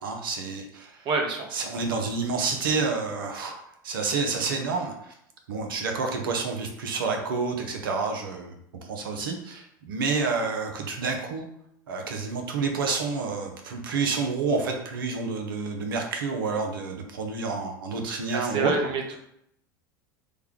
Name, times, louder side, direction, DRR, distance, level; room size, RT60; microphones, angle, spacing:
voice 1, 0.0-1.1 1.5-3.6 3.8-5.1 5.5-8.6 8.8-11.5 11.9-18.7, right 4 dB, 80° right, 3 dB, 0.6 m, -29 dB
voice 2, 1.0-1.5 18.3-19.2, right 3 dB, 45° right, 2 dB, 0.8 m, -27 dB
3.3 x 2.2 x 3.5 m, 0.76 s
hypercardioid pair, 85°, 11 cm